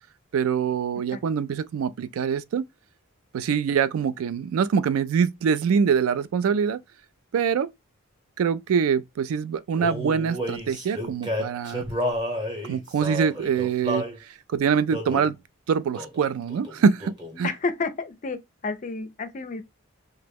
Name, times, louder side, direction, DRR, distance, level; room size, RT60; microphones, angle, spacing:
voice 1, 0.3-2.6 3.3-6.8 7.3-7.7 8.4-11.8 12.7-15.4 15.7-17.5, right 6 dB, 75° right, 0.3 m, -24 dB
Male singing, 9.8-14.2 14.9-15.3 15.9-16.2 16.5-17.4, equal, 20° right, 0.8 m, -31 dB
voice 2, 17.4-19.6, left 4 dB, 35° left, 0.4 m, -30 dB
2.9 x 2.1 x 3.3 m
head